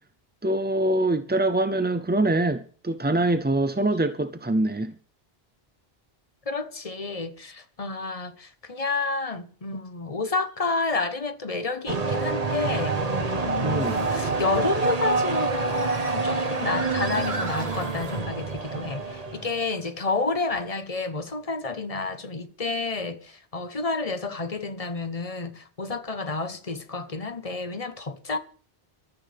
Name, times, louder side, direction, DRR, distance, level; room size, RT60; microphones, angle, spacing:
voice 1, 0.4-4.9 13.6-14.0, right 2 dB, 15° right, 0.4 m, -24 dB
sound 1, 3.9-4.1 4.7-4.8 6.9-7.0 10.5-10.6 13.8-14.3 15.3-18.2, right 2 dB, 85° right, 2.2 m, -39 dB
voice 2, 6.5-13.0 13.4-28.4, left 3 dB, 35° left, 1.1 m, -30 dB
sound 2, 11.9-19.7, right 3 dB, 40° right, 1.4 m, -27 dB
22.5 x 13.5 x 3.5 m
omnidirectional pair, 1.0 m